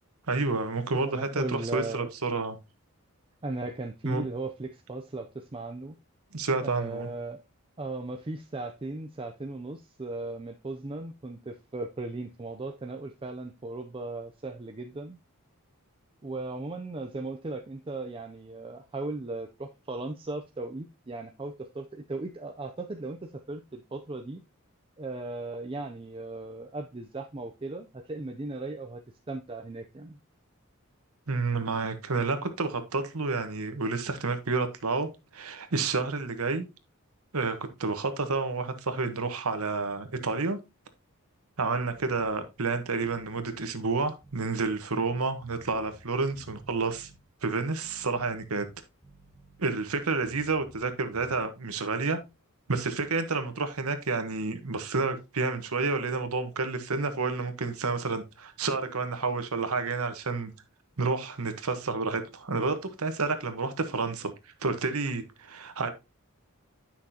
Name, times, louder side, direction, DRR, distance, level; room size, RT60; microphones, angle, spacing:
voice 1, 0.3-1.4 1.7-2.6 4.0-4.2 6.3-7.1 31.3-36.7 37.3-40.6 41.6-47.1 47.4-48.7 49.6-52.2 52.7-60.5 61.0-64.3 64.6-65.9, right 3 dB, 75° right, 1.2 m, -30 dB
voice 2, 1.0-2.1 3.4-6.0 6.6-7.4 7.8-15.2 16.2-24.4 25.0-29.0 29.3-30.2, right 2 dB, 25° right, 0.5 m, -37 dB
sound 1, 45.4-46.1 46.3-47.2 47.7-50.9 51.1-51.4, equal, 5° right, 1.8 m, -55 dB
10.0 x 5.9 x 2.8 m
head